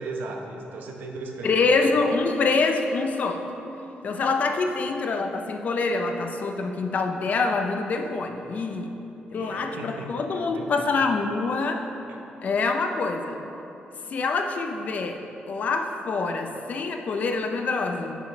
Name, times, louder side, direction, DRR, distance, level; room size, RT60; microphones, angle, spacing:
voice 1, 0.0-1.8 9.4-10.6 11.0-11.1 12.1-12.2, right 3 dB, 80° right, 2 dB, 1.0 m, -36 dB
voice 2, 1.4-3.4 4.0-8.9 9.3-11.9 12.4-13.4 14.1-15.2 15.5-18.1, left 4 dB, 50° left, 5 dB, 0.7 m, -25 dB
9.9 x 7.4 x 3.3 m, 2.9 s
cardioid pair, 125°, 3 cm